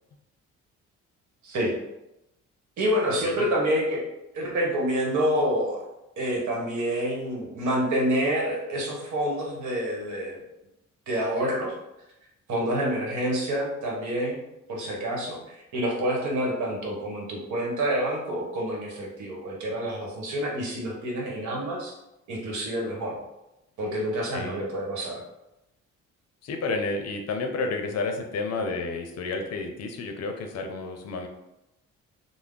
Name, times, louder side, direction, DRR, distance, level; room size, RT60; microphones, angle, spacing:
voice 1, 1.4-1.8 2.8-4.1 4.3-5.8 6.2-10.4 11.1-11.7 12.5-21.9 22.3-23.2 23.8-25.2, equal, 70° right, -1 dB, 1.1 m, -28 dB
voice 2, 26.4-31.3, left 3 dB, 60° left, 4 dB, 0.5 m, -31 dB
3.4 x 2.0 x 3.7 m, 0.92 s
cardioid pair, 90°, 30 cm